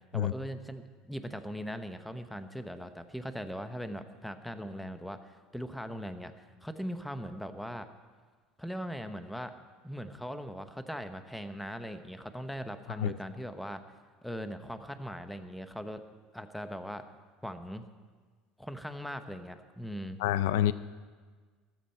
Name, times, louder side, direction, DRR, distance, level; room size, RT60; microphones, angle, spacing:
voice 1, 0.1-7.9 8.6-9.5 9.8-13.8 14.2-16.0 16.3-17.0 17.4-17.8 18.6-20.2, equal, ahead, 9 dB, 0.8 m, -40 dB
voice 2, 20.2-20.7, left 12 dB, 90° left, 16 dB, 0.4 m, -27 dB
14.0 x 13.5 x 4.4 m, 1.5 s
supercardioid pair, 125°, 0 cm